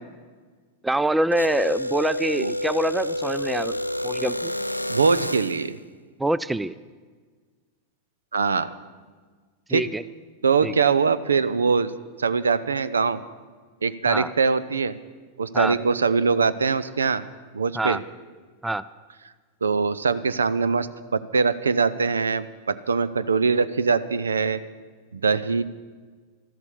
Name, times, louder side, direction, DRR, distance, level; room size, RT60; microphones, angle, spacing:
voice 1, 0.8-3.8 4.0-4.5 6.2-6.8 9.7-10.0 10.6-10.7 14.1-14.3 15.5-15.8 17.7-18.0 18.6-18.8, right 1 dB, 5° right, 17 dB, 0.4 m, -25 dB
sound 1, 1.3-5.7, left 1 dB, 90° left, 0.4 m, -29 dB
voice 2, 4.9-5.8 8.3-8.7 9.7-9.8 10.4-11.9 12.2-13.2 13.8-15.0 15.4-17.2 17.5-18.0 19.6-24.6 25.1-25.6, right 5 dB, 70° right, 15 dB, 0.6 m, -22 dB
13.5 x 12.0 x 7.2 m, 1.5 s
figure-of-eight pair, 90°, 0 cm